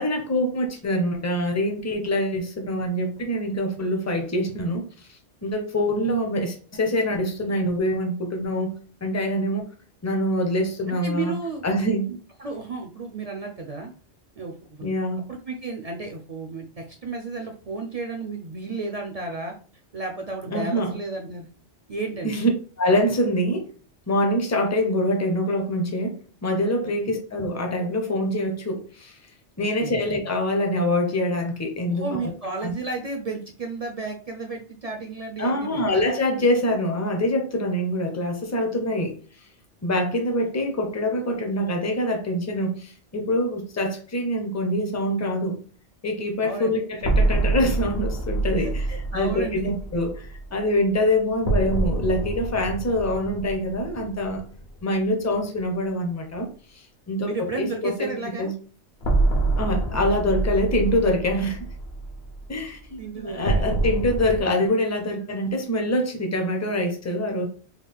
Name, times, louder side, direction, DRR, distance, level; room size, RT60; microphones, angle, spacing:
voice 1, 0.0-4.9 5.4-8.7 9.0-9.7 10.0-11.3 11.6-12.1 14.8-15.2 20.5-21.0 22.2-22.5 22.8-23.7 24.1-29.1 29.6-32.1 32.6-32.7 35.4-39.1 39.8-45.6 46.0-54.4 54.8-56.5 57.1-57.3 57.6-58.1 58.4-58.5 59.6-61.6 62.5-67.5, left 1 dB, 20° left, 0.5 m, -25 dB
voice 2, 10.9-11.6 12.0-13.9 14.4-14.9 15.3-19.5 19.9-21.5 21.9-22.4 26.8-26.9 29.6-30.0 31.9-35.8 38.9-39.0 46.4-46.8 48.6-49.7 57.2-58.5 62.7-64.0, right 3 dB, 50° right, 0.5 m, -33 dB
sound 1, 47.0-54.8 55.1-55.2 59.0-64.4, right 2 dB, 65° left, 1.1 m, -26 dB
3.9 x 2.3 x 3.4 m
omnidirectional pair, 1.2 m